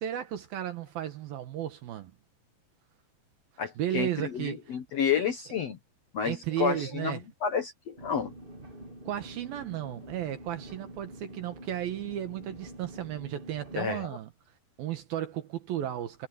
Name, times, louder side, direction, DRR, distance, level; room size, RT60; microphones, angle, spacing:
voice 1, 0.0-2.1 3.8-4.8 6.2-7.2 9.0-14.3 14.8-16.3, right 11 dB, 70° right, 3.0 m, -34 dB
voice 2, 3.6-5.8 6.1-8.3 13.8-14.1, left 7 dB, 65° left, 1.6 m, -30 dB
sound 1, 8.0-13.8, right 1 dB, 15° right, 3.0 m, -46 dB
omnidirectional pair, 4.6 m